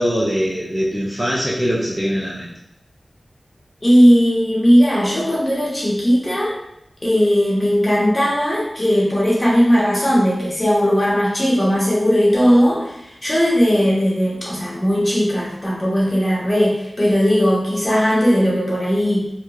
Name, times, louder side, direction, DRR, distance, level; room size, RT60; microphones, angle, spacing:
voice 1, 0.0-2.5, equal, 15° right, -6 dB, 0.5 m, -22 dB
voice 2, 3.8-6.5 7.0-19.3, equal, 25° left, -6 dB, 0.9 m, -17 dB
2.9 x 2.2 x 2.3 m, 0.82 s
wide cardioid pair, 90°, 0 cm